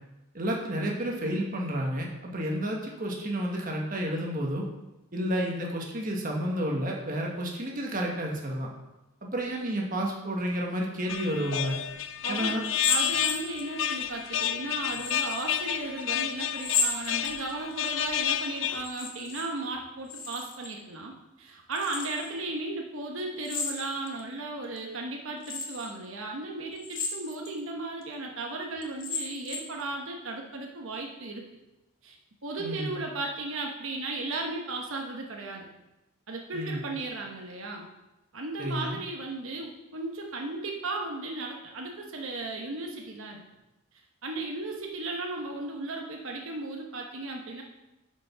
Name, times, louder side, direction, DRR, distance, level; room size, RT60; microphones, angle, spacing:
voice 1, 0.3-4.7 5.1-8.7 9.2-11.8 12.3-12.6 32.6-33.0 36.5-36.9 38.6-39.0, equal, 40° right, 0 dB, 1.3 m, -31 dB
sound 1, 11.1-18.8, left 10 dB, 65° left, 0.5 m, -31 dB
voice 2, 12.2-21.1 21.4-31.4 32.0-32.2 32.4-35.7 36.3-37.9 38.3-43.4 44.2-47.6, right 2 dB, 75° right, 1 dB, 1.0 m, -35 dB
sound 2, 12.6-13.9 14.9-15.5 16.5-17.7 18.7-19.5 19.7-20.7 21.7-22.3 23.4-24.2 24.8-24.9 25.4-25.9 26.8-27.5 28.0-28.1 28.8-29.8, left 4 dB, 40° left, 1.2 m, -33 dB
8.1 x 5.2 x 5.6 m, 0.98 s
head